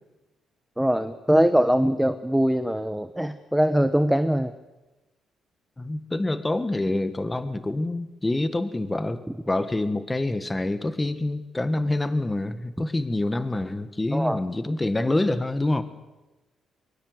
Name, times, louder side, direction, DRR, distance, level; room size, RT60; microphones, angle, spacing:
voice 1, 0.8-4.5 14.1-14.4, equal, 5° right, 10 dB, 1.1 m, -22 dB
voice 2, 5.8-15.8, left 2 dB, 15° left, 11 dB, 1.6 m, -26 dB
23.0 x 23.0 x 8.0 m, 1.1 s
cardioid pair, 90°, 0 cm